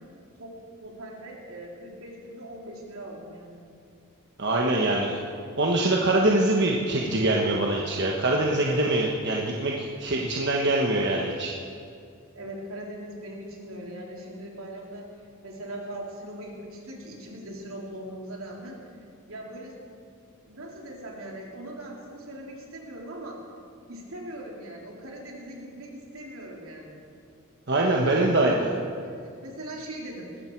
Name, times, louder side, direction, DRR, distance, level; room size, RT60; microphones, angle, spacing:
voice 1, 0.4-3.6 12.3-15.1 15.4-18.8 19.3-19.8 20.4-23.4 23.9-27.0 28.0-28.6 29.0-30.4, right 1 dB, 80° right, -1 dB, 3.3 m, -40 dB
voice 2, 4.4-5.2 5.6-11.5 27.7-28.5, right 2 dB, 55° right, -1 dB, 1.3 m, -24 dB
20.0 x 15.0 x 4.6 m, 2.3 s
head